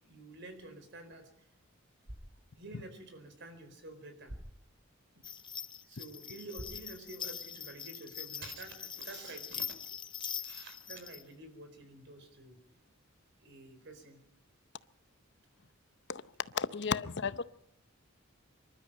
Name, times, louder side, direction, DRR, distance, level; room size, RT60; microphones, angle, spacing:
voice 1, 0.0-1.5 2.6-4.4 5.1-5.2 5.8-9.8 10.4-12.6 13.4-14.2, right 2 dB, 60° right, 8 dB, 4.5 m, -49 dB
sound 1, 1.9-7.9, equal, 85° right, 6.4 m, -54 dB
sound 2, 5.2-11.2, left 8 dB, 25° left, 0.7 m, -43 dB
voice 2, 16.1-17.4, left 6 dB, 60° left, 15 dB, 0.7 m, -34 dB
25.5 x 12.5 x 8.9 m, 0.74 s
head